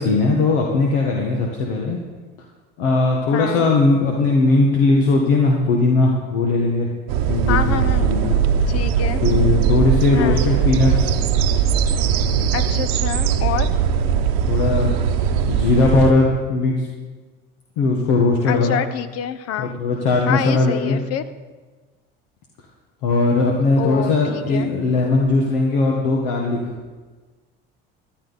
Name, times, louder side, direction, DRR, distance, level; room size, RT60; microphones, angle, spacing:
voice 1, 0.0-2.0 2.8-6.9 7.3-8.4 9.2-11.1 14.4-14.9 15.5-16.9 17.8-18.8 19.6-21.0 23.0-26.6, left 3 dB, 80° left, -1 dB, 1.7 m, -19 dB
voice 2, 3.3-3.7 7.5-8.1 8.7-9.2 10.1-10.5 12.5-13.7 18.4-19.8 20.3-21.2 23.8-24.7, left 9 dB, 55° left, 13 dB, 0.9 m, -27 dB
sound 1, 7.1-16.1, right 7 dB, 75° right, 1.0 m, -20 dB
15.0 x 11.0 x 4.1 m, 1.3 s
supercardioid pair, 85°, 29 cm